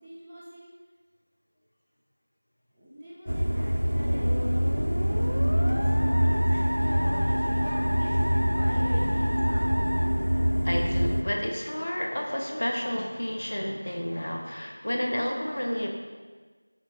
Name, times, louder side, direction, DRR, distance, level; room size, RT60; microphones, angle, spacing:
voice 1, 0.0-0.7 2.7-4.7 5.0-6.3 6.9-9.4, equal, ahead, -21 dB, 0.5 m, -43 dB
sound 1, 3.3-11.2, equal, 90° right, 0.7 m, -25 dB
Musical instrument, 4.1-11.0, equal, 70° left, 0.9 m, -35 dB
voice 2, 6.1-8.1 9.5-9.7 10.6-15.9, equal, 35° left, 1 dB, 0.9 m, -32 dB
9.4 x 4.3 x 5.0 m, 1.4 s
figure-of-eight pair, 175°, 0 cm